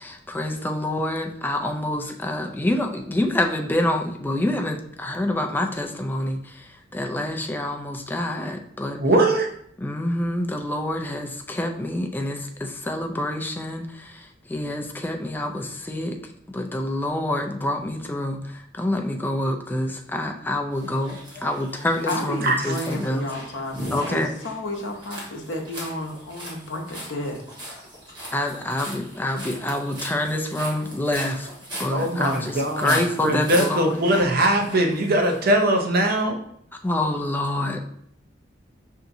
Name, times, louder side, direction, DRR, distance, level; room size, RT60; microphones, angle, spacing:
voice 1, 0.0-9.0 9.8-16.2 16.5-23.3 23.9-24.3 28.3-31.5 31.8-34.0 36.8-37.8, left 1 dB, 10° left, 3 dB, 0.4 m, -27 dB
voice 2, 9.0-9.5 22.4-22.7 31.9-36.4, right 1 dB, 55° right, 3 dB, 0.6 m, -21 dB
sound 1, 20.8-35.5, equal, 25° right, 1.3 m, -38 dB
voice 3, 22.0-27.4, left 1 dB, 70° left, 2 dB, 0.7 m, -32 dB
5.7 x 2.7 x 2.6 m, 0.67 s
head